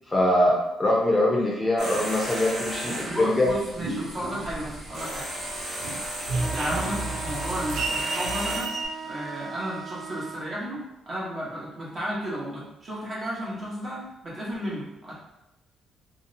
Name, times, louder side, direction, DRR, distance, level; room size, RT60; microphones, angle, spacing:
voice 1, 0.1-3.5, left 1 dB, 20° left, -3 dB, 0.6 m, -23 dB
sound 1, 1.8-8.6, right 1 dB, 65° right, 0.9 m, -34 dB
voice 2, 2.8-5.2 6.5-8.7 9.0-15.1, equal, 35° right, -6 dB, 1.0 m, -33 dB
sound 2, 3.4-5.1 5.5-8.9, right 3 dB, 85° right, 0.4 m, -32 dB
sound 3, 6.3-10.4, right 5 dB, 20° right, 0.6 m, -38 dB
2.7 x 2.0 x 2.6 m, 0.91 s
cardioid pair, 90°, 0 cm